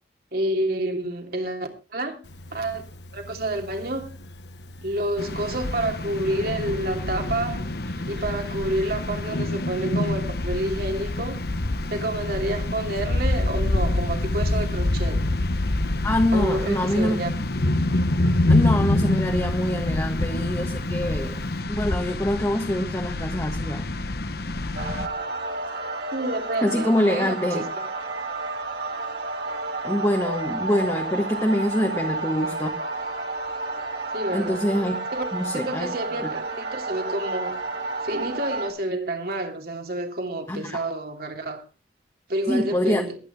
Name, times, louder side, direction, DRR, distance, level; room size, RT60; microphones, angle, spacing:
voice 1, 0.3-2.2 2.5-2.8 3.1-4.1 4.8-11.5 11.9-15.2 16.3-17.3 26.1-27.8 34.1-34.6 35.1-35.2 35.5-37.7 38.0-41.6 42.3-43.2, right 1 dB, 60° right, 3.0 m, -29 dB
Thunder, 2.3-21.6, left 1 dB, 75° left, 1.4 m, -29 dB
sound 1, 5.2-25.1, left 2 dB, 60° left, 1.1 m, -29 dB
voice 2, 16.0-17.2 18.5-21.4 21.7-23.9 26.6-27.7 29.8-32.8 34.3-35.0 35.3-35.9 36.2-36.3 40.5-40.8 42.5-43.0, left 1 dB, 20° left, 1.5 m, -25 dB
sound 2, 24.8-38.7, right 3 dB, 85° right, 3.4 m, -31 dB
22.5 x 9.4 x 3.5 m
head